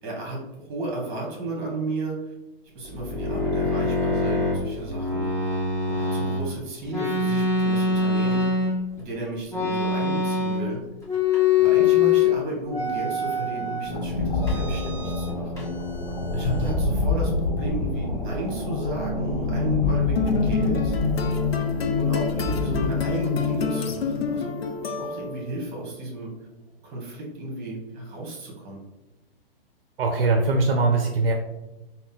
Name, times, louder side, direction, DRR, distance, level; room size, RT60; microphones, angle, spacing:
voice 1, 0.0-2.3 2.7-5.3 5.9-8.4 9.0-10.8 11.6-15.7 16.3-21.0 22.0-24.5 24.8-26.3 26.8-28.8, right 1 dB, 30° right, -1 dB, 1.4 m, -33 dB
sound 1, 2.8-6.4 6.9-9.0 9.5-10.8 11.0-12.3 12.7-13.9 14.4-15.3 15.6-16.8, left 4 dB, 10° left, 1.4 m, -24 dB
sound 2, 13.8-24.9, left 3 dB, 65° left, 1.0 m, -26 dB
sound 3, 20.2-25.5, left 4 dB, 85° left, 0.6 m, -29 dB
voice 2, 30.0-31.3, right 3 dB, 65° right, 3 dB, 0.6 m, -21 dB
3.7 x 2.2 x 3.8 m, 1.0 s
hypercardioid pair, 130°, 30 cm